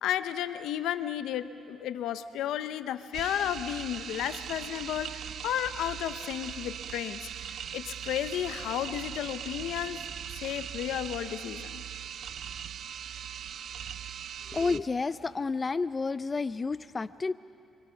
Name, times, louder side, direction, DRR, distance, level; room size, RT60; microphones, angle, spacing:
voice 1, 0.0-7.3 7.7-10.0 10.3-11.8, left 11 dB, 85° left, 12 dB, 0.8 m, -33 dB
sound 1, 3.1-14.8, right 9 dB, 65° right, 0.6 m, -40 dB
voice 2, 14.5-17.3, left 4 dB, 30° left, 14 dB, 0.5 m, -30 dB
28.0 x 24.5 x 5.8 m, 2.5 s
cardioid pair, 90°, 0 cm